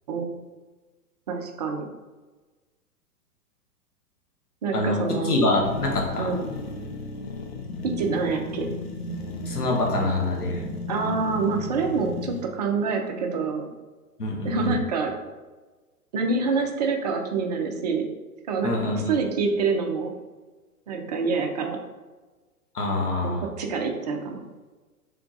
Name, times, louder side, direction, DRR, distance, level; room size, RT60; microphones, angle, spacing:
voice 1, 1.3-1.9 4.6-5.3 6.2-6.4 7.8-8.7 10.9-13.7 14.4-15.2 16.1-18.0 18.5-20.1 20.9-21.8 23.2-24.4, right 4 dB, 30° right, 3 dB, 0.4 m, -26 dB
voice 2, 4.7-6.3 9.5-10.7 14.2-14.8 18.6-19.1 22.7-23.4, left 2 dB, 80° left, -1 dB, 1.2 m, -25 dB
sound 1, 5.6-12.4, left 2 dB, 45° left, 0.6 m, -34 dB
3.6 x 3.3 x 3.8 m, 1.2 s
figure-of-eight pair, 105°, 46 cm